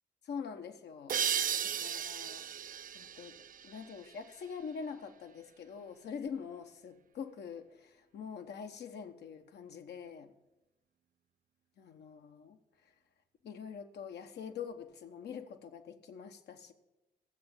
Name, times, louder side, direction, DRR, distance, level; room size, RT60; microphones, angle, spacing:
voice 1, 0.2-1.2 1.8-10.3 11.8-12.6 12.8-12.9 13.4-16.7, left 6 dB, 70° left, 7 dB, 1.1 m, -45 dB
sound 1, 1.1-4.5, right 8 dB, 50° right, 0.5 m, -36 dB
14.0 x 7.8 x 7.2 m, 0.98 s
hypercardioid pair, 45°, 18 cm